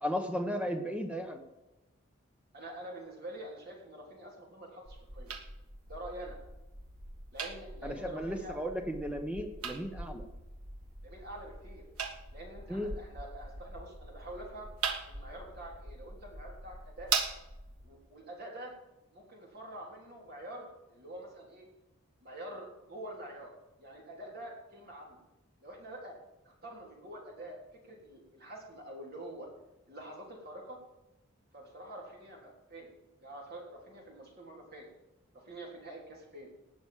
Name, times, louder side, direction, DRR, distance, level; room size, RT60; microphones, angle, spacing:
voice 1, 0.0-1.4 7.8-10.3 12.7-12.9, equal, 5° right, 5 dB, 1.0 m, -35 dB
voice 2, 2.5-5.3 5.9-6.4 7.3-8.6 11.0-11.8 12.3-14.7 15.1-17.1 17.8-18.7 19.1-21.7 22.2-25.2 25.6-26.2 26.4-27.6 27.8-29.5 29.9-30.8 31.5-32.9 33.2-34.9 35.3-36.5, right 1 dB, 45° right, -1 dB, 3.7 m, -46 dB
sound 1, 4.9-17.9, right 5 dB, 85° right, 1.7 m, -41 dB
18.0 x 6.2 x 7.4 m, 0.96 s
head